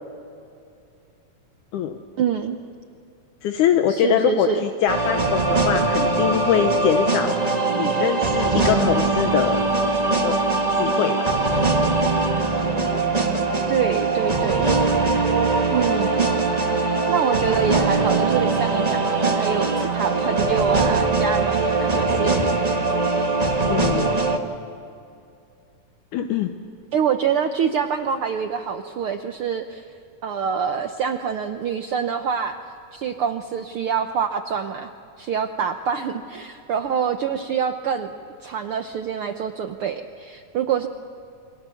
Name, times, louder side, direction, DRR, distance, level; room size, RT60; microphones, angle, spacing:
voice 1, 2.2-2.6 3.9-4.6 13.7-14.7 15.7-16.3 17.1-22.4 26.9-29.9 30.2-32.6 32.9-34.9 35.2-38.1 38.4-40.9, right 7 dB, 80° right, 7 dB, 1.2 m, -25 dB
voice 2, 3.4-7.4 7.8-9.7 10.2-11.3 23.7-24.1 26.1-26.5, left 9 dB, 80° left, 7 dB, 2.4 m, -23 dB
sound 1, 4.9-24.4, right 3 dB, 25° right, 0.8 m, -21 dB
29.0 x 24.5 x 7.1 m, 2.6 s
omnidirectional pair, 3.6 m